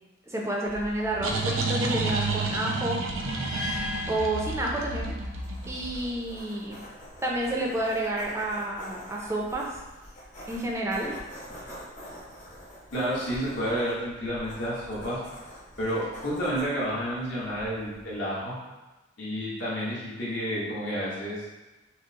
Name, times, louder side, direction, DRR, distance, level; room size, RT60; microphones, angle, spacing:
voice 1, 0.3-3.0 4.1-5.1 5.7-6.8 7.2-9.8 10.5-11.2, right 1 dB, 15° right, -2 dB, 0.4 m, -30 dB
sound 1, 0.7-6.2, right 3 dB, 85° right, 0.5 m, -30 dB
sound 2, 3.1-5.3, left 2 dB, 80° left, 1.5 m, -37 dB
sound 3, 5.4-18.2, equal, 35° left, 1.0 m, -46 dB
voice 2, 12.9-15.2 15.8-18.5 19.2-21.4, equal, 60° left, -8 dB, 1.2 m, -30 dB
6.0 x 2.0 x 2.8 m, 1.1 s
head